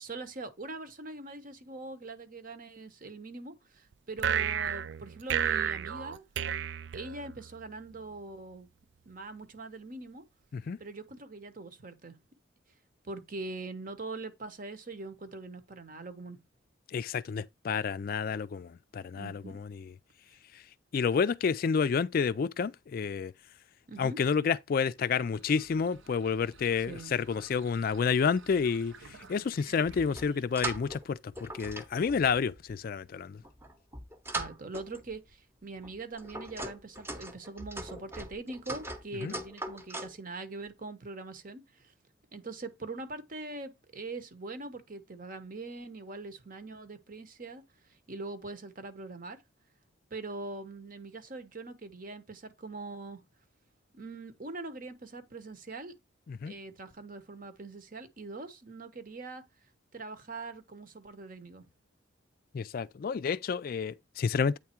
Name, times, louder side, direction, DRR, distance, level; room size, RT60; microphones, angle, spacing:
voice 1, 0.0-6.2 6.9-8.7 9.1-10.2 10.8-12.1 13.0-16.4 19.1-19.6 23.9-24.2 26.9-27.1 34.3-41.9 42.3-47.6 47.9-49.4 50.1-53.2 53.9-55.9 56.4-59.4 59.9-61.6, right 3 dB, 45° right, 1.0 m, -42 dB
sound 1, 4.2-7.6, right 8 dB, 65° right, 0.3 m, -32 dB
voice 2, 16.9-19.9 20.9-23.3 24.0-28.9 29.3-33.4 39.2-39.3 56.3-56.5 62.5-64.6, left 6 dB, 50° left, 0.3 m, -30 dB
sound 2, 25.0-31.0, right 4 dB, 85° right, 0.9 m, -54 dB
sound 3, 29.8-31.0 31.3-32.7 33.4-35.2 35.8-40.2, right 2 dB, 15° right, 0.9 m, -40 dB
8.7 x 3.6 x 4.4 m
head